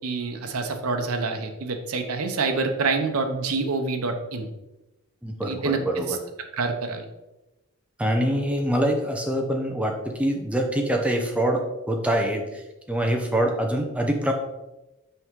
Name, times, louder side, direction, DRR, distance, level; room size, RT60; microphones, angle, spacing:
voice 1, 0.0-4.5 5.4-5.8 6.6-7.0, right 4 dB, 85° right, 5 dB, 0.8 m, -27 dB
voice 2, 5.2-6.2 8.0-12.6 12.9-14.3, right 1 dB, 5° right, 2 dB, 0.6 m, -25 dB
5.6 x 4.7 x 3.7 m, 1.0 s
head